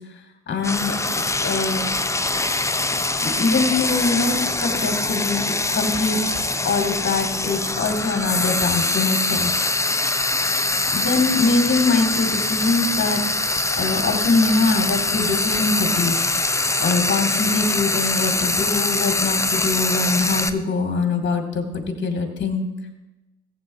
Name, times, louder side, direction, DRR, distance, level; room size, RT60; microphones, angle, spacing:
voice 1, 0.5-1.0 1.4-1.8 3.2-6.2 6.6-9.5 10.9-13.2 13.8-16.2 16.8-22.6, left 3 dB, 30° left, 3 dB, 2.3 m, -23 dB
Frying (food), 0.6-20.5, left 2 dB, 10° left, 0.7 m, -23 dB
18.5 x 8.3 x 2.8 m, 1.0 s
figure-of-eight pair, 50°, 37 cm